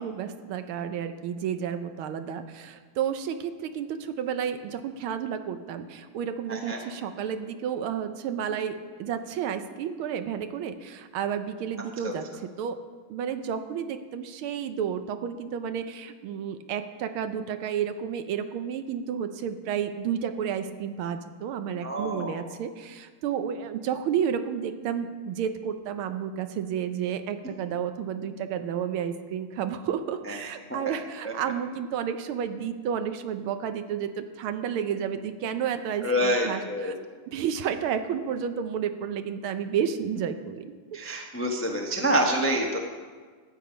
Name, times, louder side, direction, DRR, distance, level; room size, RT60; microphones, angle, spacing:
voice 1, 0.0-12.8 13.1-36.9 37.3-40.7, right 8 dB, 75° right, 9 dB, 1.5 m, -31 dB
voice 2, 21.8-22.3 30.9-31.0 31.2-31.3 36.0-36.9 40.9-42.8, equal, 20° left, 1 dB, 0.3 m, -27 dB
12.5 x 8.7 x 5.1 m, 1.5 s
omnidirectional pair, 2.4 m